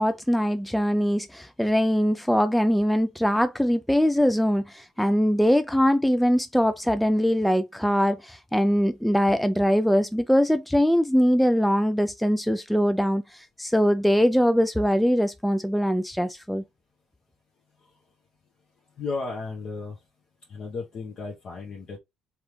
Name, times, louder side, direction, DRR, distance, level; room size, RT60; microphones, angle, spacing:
voice 1, 0.0-16.6, equal, ahead, 0.3 m, -22 dB
voice 2, 19.0-20.0 20.5-22.0, left 4 dB, 45° left, 1.0 m, -34 dB
3.8 x 3.0 x 3.1 m
figure-of-eight pair, 50°, 2 cm